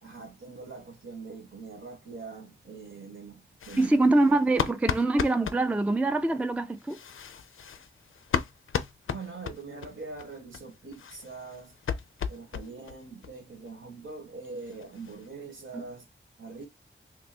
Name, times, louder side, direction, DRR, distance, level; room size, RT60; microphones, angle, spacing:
voice 1, 0.0-4.1 9.1-11.7 12.3-16.1 16.4-16.7, right 4 dB, 75° right, 1.4 m, -43 dB
sound 1, 3.6-5.6 6.8-9.9 10.2-10.3 10.5-10.6 10.9-13.0 13.2-13.3 13.7-13.8 14.1-14.2 14.4-15.3, left 7 dB, 80° left, 0.4 m, -34 dB
voice 2, 3.8-7.0 15.7-15.8, right 2 dB, 5° right, 0.3 m, -24 dB
2.9 x 2.3 x 4.2 m
wide cardioid pair, 55°, 20 cm